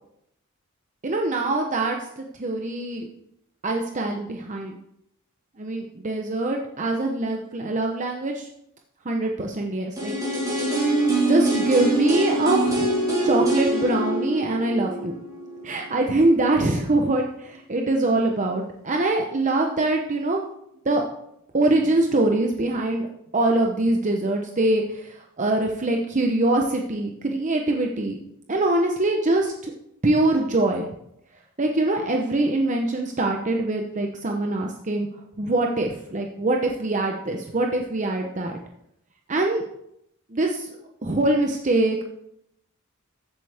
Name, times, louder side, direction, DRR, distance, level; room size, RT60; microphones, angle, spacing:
voice 1, 1.0-3.1 3.6-4.8 5.6-8.5 9.0-10.1 11.3-12.9 13.2-15.2 15.6-20.4 20.8-21.0 21.5-23.1 23.3-28.2 28.5-29.7 30.0-30.9 31.6-35.1 35.4-38.6 39.3-39.6 40.3-40.7 41.0-42.0, right 2 dB, 35° right, 2 dB, 0.8 m, -23 dB
sound 1, 10.0-15.9 16.2-16.3, right 1 dB, 15° right, 4.6 m, -24 dB
14.5 x 7.9 x 3.5 m, 0.78 s
head